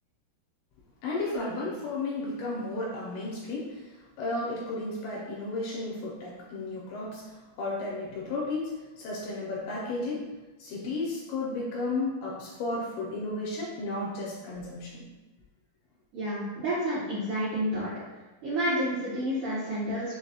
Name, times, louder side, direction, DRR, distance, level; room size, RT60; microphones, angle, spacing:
voice 1, 1.0-3.8 4.2-10.3 10.6-15.1, left 2 dB, 80° left, -4 dB, 2.4 m, -33 dB
voice 2, 16.1-17.9 18.4-20.2, equal, 80° right, -11 dB, 1.8 m, -29 dB
6.4 x 2.2 x 2.8 m, 1.2 s
omnidirectional pair, 5.0 m